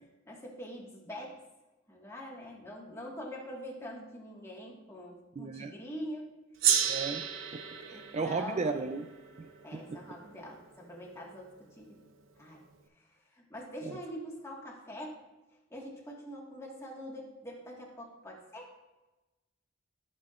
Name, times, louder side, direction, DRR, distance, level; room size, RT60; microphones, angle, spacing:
voice 1, 0.3-1.4 1.9-6.3 7.9-8.7 9.6-12.0 12.4-12.6 13.0-15.2 15.7-18.7, equal, 15° left, -2 dB, 1.6 m, -44 dB
voice 2, 5.4-5.7 6.9-7.2 7.9-9.1 9.7-10.0 13.9-14.0, right 4 dB, 35° right, 7 dB, 0.4 m, -34 dB
Gong, 6.6-11.3, right 8 dB, 80° right, 0.7 m, -33 dB
14.0 x 6.6 x 2.5 m, 1.1 s
head